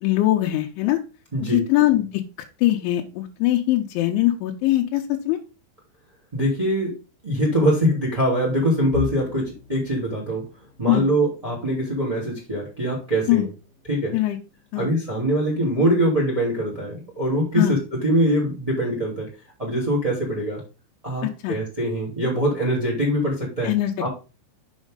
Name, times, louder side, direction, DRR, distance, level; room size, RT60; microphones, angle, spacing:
voice 1, 0.0-1.0 1.4-2.2 2.6-5.4 10.9-11.1 13.3-13.5 14.1-14.4 14.7-14.9 17.6-17.8 21.2-21.6 23.6-24.1, left 15 dB, 85° left, 2 dB, 3.1 m, -21 dB
voice 2, 1.3-1.6 6.3-6.9 7.2-10.4 10.8-13.5 13.9-14.1 14.7-19.3 19.6-20.6 21.0-23.7 24.0-24.1, equal, 15° right, -3 dB, 1.6 m, -23 dB
sound 1, 8.9-20.8 21.2-21.4 21.8-22.0 22.9-23.3, left 8 dB, 50° left, 1.9 m, -42 dB
7.2 x 6.4 x 3.7 m, 0.31 s
omnidirectional pair, 5.5 m